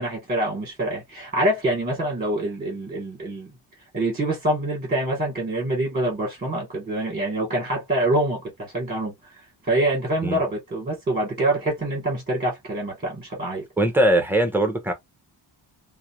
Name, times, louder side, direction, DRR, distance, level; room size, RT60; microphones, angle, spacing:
voice 1, 0.0-3.5 3.9-13.6, right 1 dB, 20° right, 1.0 m, -25 dB
voice 2, 13.8-14.9, right 1 dB, 5° right, 0.4 m, -20 dB
2.3 x 2.0 x 2.6 m
wide cardioid pair, 170°, 47 cm